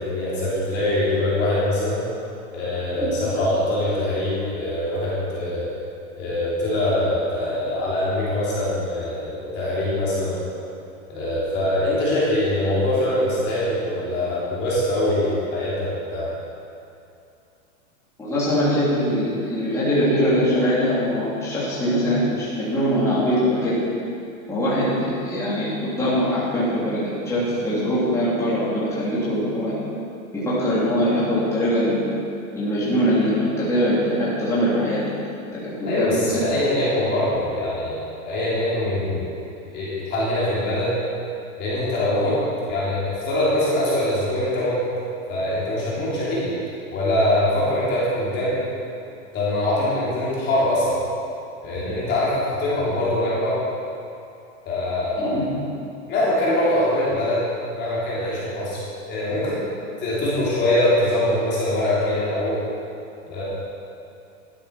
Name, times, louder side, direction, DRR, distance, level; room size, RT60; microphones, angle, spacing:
voice 1, 0.0-2.0 2.5-5.7 6.2-10.4 11.1-16.3 35.9-39.4 39.7-40.9 41.6-42.4 42.7-44.8 45.3-46.5 46.9-48.6 49.3-51.0 51.6-53.6 54.6-55.4 56.1-57.4 57.7-58.8 59.1-59.6 60.0-62.6 63.3-63.4, left 1 dB, 25° left, -8 dB, 3.3 m, -23 dB
voice 2, 18.2-23.8 24.5-29.8 30.3-32.1 32.6-35.0 35.6-36.5 55.2-55.5, equal, 5° left, -11 dB, 3.2 m, -22 dB
12.0 x 8.6 x 5.9 m, 2.6 s
supercardioid pair, 150°, 42 cm